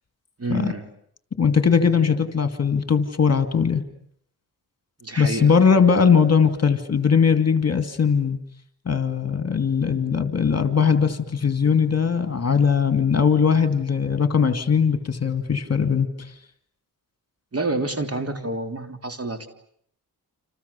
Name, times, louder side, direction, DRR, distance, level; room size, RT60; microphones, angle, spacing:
voice 1, 0.4-0.8 5.0-5.7 17.5-19.5, right 2 dB, 40° right, 7 dB, 3.4 m, -28 dB
voice 2, 1.4-3.8 5.2-8.4 8.9-16.1, left 6 dB, 40° left, 9 dB, 2.5 m, -20 dB
29.5 x 27.5 x 7.1 m, 0.66 s
cardioid pair, 80°, 38 cm